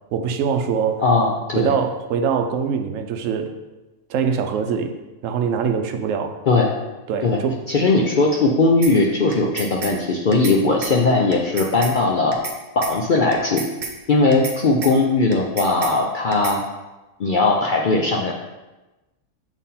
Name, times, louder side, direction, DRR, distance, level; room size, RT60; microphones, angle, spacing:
voice 1, 0.1-1.0 1.6-3.5 4.1-5.0 5.2-6.4 7.1-7.6, right 6 dB, 70° right, 6 dB, 1.0 m, -23 dB
voice 2, 1.0-1.7 6.5-6.7 7.2-7.4 7.7-12.4 12.7-13.6 14.1-16.6 17.2-18.3, left 3 dB, 60° left, -1 dB, 0.5 m, -19 dB
sound 1, 8.8-8.9 9.3-9.9 10.3-10.6 10.8-10.9 11.3-11.9 12.3-12.6 12.8-12.9 13.3-13.9 14.3-14.6 14.8-14.9 15.3-15.9 16.3-16.6, right 4 dB, 40° right, 0.8 m, -30 dB
7.1 x 3.7 x 4.2 m, 1.1 s
omnidirectional pair, 1.4 m